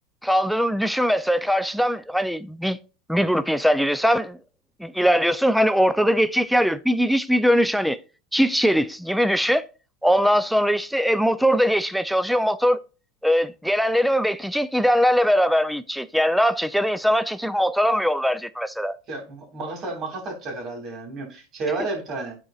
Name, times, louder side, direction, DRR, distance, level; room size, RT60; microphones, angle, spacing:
voice 1, 0.2-2.8 3.1-4.4 4.8-8.0 8.3-9.7 10.0-12.8 13.2-19.0, equal, ahead, 0.4 m, -21 dB
voice 2, 19.1-22.4, right 3 dB, 40° right, 2.8 m, -31 dB
12.5 x 4.4 x 2.4 m
supercardioid pair, 120°, 0 cm